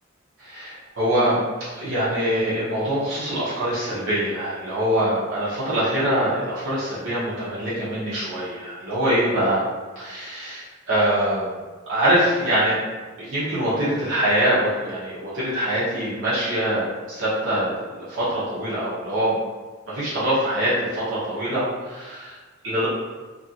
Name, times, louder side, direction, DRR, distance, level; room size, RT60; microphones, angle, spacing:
voice 1, 0.4-9.6 10.0-11.6 11.9-12.8 13.2-19.4 19.9-22.4 22.6-22.9, right 1 dB, 55° right, -10 dB, 0.8 m, -24 dB
2.9 x 2.5 x 2.8 m, 1.4 s
head